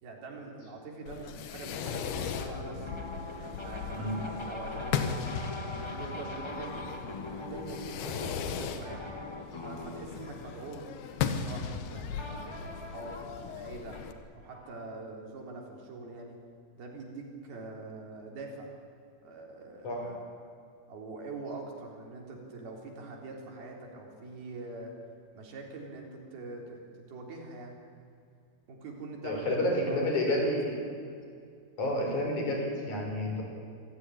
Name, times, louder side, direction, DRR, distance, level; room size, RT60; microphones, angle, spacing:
voice 1, 0.0-2.9 3.4-5.2 5.6-9.1 9.6-10.9 11.4-14.0 14.3-16.4 16.8-18.7 19.2-20.2 20.9-24.9 25.4-26.8 27.1-27.8 28.7-30.6 30.8-31.0, right 3 dB, 80° right, 1 dB, 5.6 m, -44 dB
Fireworks, 1.1-14.1, left 7 dB, 90° left, 3.3 m, -37 dB
sound 1, 2.3-11.5 12.2-14.9, left 2 dB, 25° left, 0.6 m, -43 dB
voice 2, 3.9-4.2 19.8-20.1 29.2-30.8 31.8-33.4, left 1 dB, 55° left, 1 dB, 5.8 m, -30 dB
26.0 x 16.0 x 10.0 m, 2.4 s
omnidirectional pair, 4.3 m